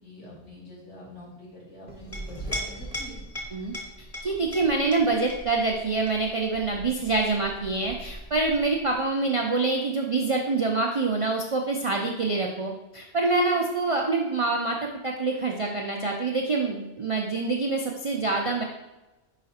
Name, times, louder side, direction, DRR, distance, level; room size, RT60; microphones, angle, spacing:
voice 1, 0.0-3.2, left 1 dB, 70° left, -7 dB, 2.6 m, -45 dB
Chink clink, 1.9-9.0, equal, 30° left, 1.3 m, -39 dB
voice 2, 4.2-18.6, right 3 dB, 50° right, 1 dB, 0.4 m, -26 dB
5.0 x 4.8 x 4.2 m, 1.0 s
omnidirectional pair, 1.2 m